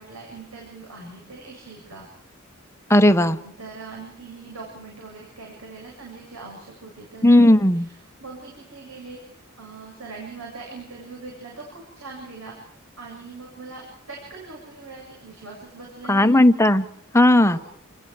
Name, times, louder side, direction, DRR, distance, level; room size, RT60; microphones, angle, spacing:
voice 1, 0.0-2.1 3.4-7.9 8.2-9.2 9.6-12.5 13.0-16.3 17.3-17.6, right 3 dB, 75° right, -2 dB, 7.7 m, -41 dB
voice 2, 2.9-3.4 7.2-7.9 16.1-16.8 17.1-17.6, left 1 dB, 15° left, 9 dB, 1.0 m, -15 dB
29.5 x 21.0 x 4.8 m, 0.74 s
head